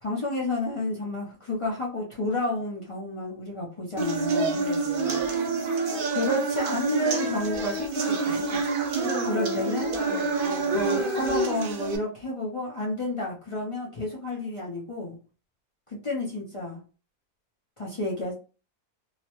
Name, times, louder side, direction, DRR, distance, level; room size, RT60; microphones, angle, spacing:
voice 1, 0.0-4.6 6.1-8.6 9.3-9.9 10.7-15.2 15.9-16.8 17.8-18.3, left 1 dB, 40° left, 0.5 m, -30 dB
sound 1, 4.0-12.0, right 3 dB, 70° right, 0.5 m, -27 dB
voice 2, 4.5-5.3 9.0-10.9, left 4 dB, 65° left, 1.1 m, -38 dB
2.9 x 2.1 x 2.9 m
omnidirectional pair, 1.6 m